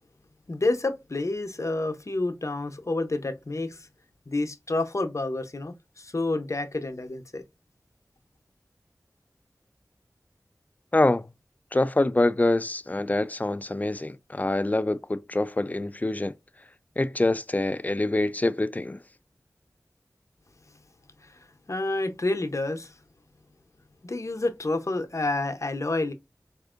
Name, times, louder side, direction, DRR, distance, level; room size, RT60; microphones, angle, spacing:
voice 1, 0.5-3.9 4.3-7.4 21.7-22.9 24.0-26.1, left 2 dB, 55° left, 0.7 m, -29 dB
voice 2, 10.9-11.3 11.7-16.3 17.0-19.0, left 2 dB, 25° left, 0.3 m, -25 dB
4.3 x 2.6 x 2.4 m
wide cardioid pair, 45°, 6 cm